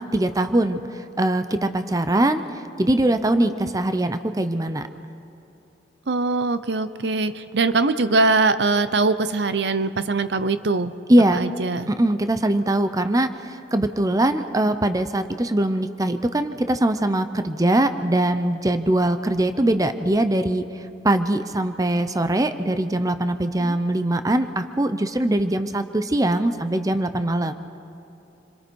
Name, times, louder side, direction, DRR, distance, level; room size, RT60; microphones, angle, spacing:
voice 1, 0.0-2.4 2.8-4.9 11.1-11.4 11.9-20.7 21.0-27.5, right 1 dB, 20° right, 10 dB, 0.6 m, -22 dB
voice 2, 6.1-10.9 11.3-11.9 23.6-23.7, right 3 dB, 70° right, 12 dB, 0.8 m, -22 dB
28.0 x 22.0 x 4.6 m, 2.9 s
head